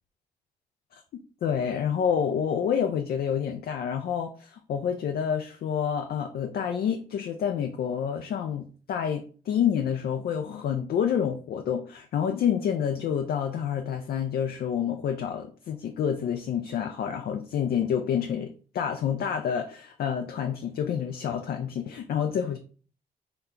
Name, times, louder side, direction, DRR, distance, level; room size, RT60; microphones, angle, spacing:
voice 1, 1.4-18.5 18.7-22.6, left 8 dB, 60° left, 5 dB, 0.4 m, -28 dB
2.8 x 2.2 x 3.7 m, 0.40 s
supercardioid pair, 55°, 18 cm